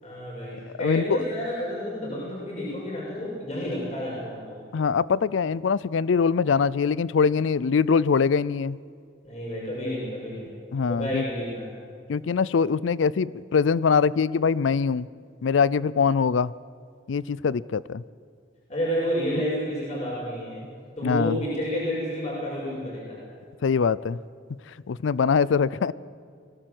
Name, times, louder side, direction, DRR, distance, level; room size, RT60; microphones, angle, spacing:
voice 1, 0.0-4.6 9.2-10.5 10.9-11.7 18.7-20.6 21.0-23.2, equal, 40° left, -5 dB, 6.6 m, -30 dB
voice 2, 0.8-1.2 4.7-8.8 10.7-11.2 12.1-15.1 15.4-16.5 17.1-18.0 21.0-21.4 23.6-24.2 24.9-25.9, left 5 dB, 85° left, 20 dB, 0.4 m, -23 dB
22.5 x 17.5 x 7.8 m, 2.2 s
head